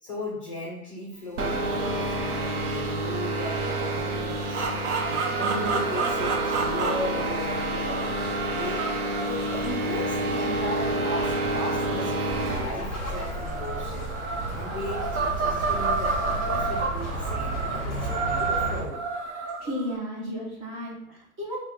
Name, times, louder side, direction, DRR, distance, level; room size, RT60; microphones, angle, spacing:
voice 1, 0.0-4.7 5.0-8.1 8.5-8.9 9.2-14.1 14.5-19.0, left 2 dB, 25° left, -3 dB, 0.5 m, -36 dB
sound 1, 1.4-12.8, right 2 dB, 90° right, 0.8 m, -28 dB
sound 2, 4.5-12.3 12.9-19.9, right 4 dB, 50° right, 0.8 m, -31 dB
Bird, 12.3-18.8, right 1 dB, ahead, 1.0 m, -33 dB
voice 2, 19.6-21.6, equal, 20° right, -4 dB, 0.6 m, -33 dB
3.3 x 2.2 x 3.6 m, 0.82 s
hypercardioid pair, 140°, 43 cm